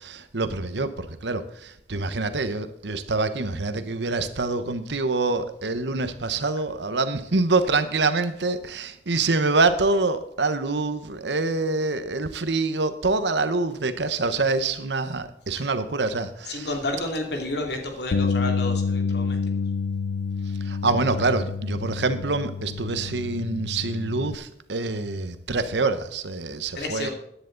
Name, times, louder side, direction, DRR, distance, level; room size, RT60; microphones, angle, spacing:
voice 1, 0.0-16.7 20.6-27.1, right 3 dB, 75° right, 11 dB, 1.1 m, -26 dB
voice 2, 16.5-19.4 26.7-27.1, left 2 dB, 65° left, 2 dB, 2.7 m, -30 dB
Bass guitar, 18.1-24.4, left 5 dB, 85° left, 0.5 m, -28 dB
15.0 x 10.5 x 4.0 m, 0.74 s
head